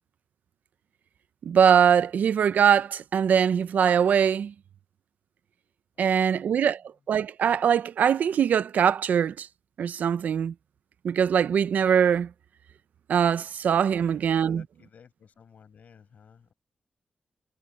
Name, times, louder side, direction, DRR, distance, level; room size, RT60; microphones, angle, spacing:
voice 1, 1.4-4.5 6.0-6.8 7.1-9.5 9.8-10.5 11.0-12.3 13.1-14.6, right 8 dB, 85° right, 0.6 m, -22 dB
voice 2, 5.9-6.8 14.0-14.2 14.5-16.5, left 7 dB, 70° left, 5.7 m, -56 dB
wide cardioid pair, 115°, 3 cm